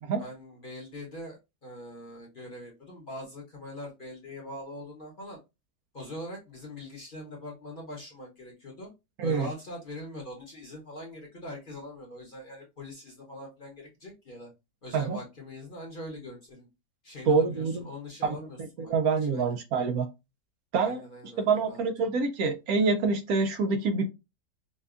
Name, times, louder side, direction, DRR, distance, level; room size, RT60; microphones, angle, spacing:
voice 1, 0.2-5.4 5.9-8.9 9.2-14.5 14.8-16.7 17.0-18.9 19.3-19.6 20.8-22.1, left 1 dB, 40° left, -1 dB, 0.9 m, -42 dB
voice 2, 17.3-17.9 18.2-18.4 18.9-20.1 20.7-21.0 21.4-24.1, right 4 dB, 70° right, 6 dB, 1.0 m, -26 dB
5.2 x 2.2 x 2.4 m, 0.24 s
omnidirectional pair, 1.8 m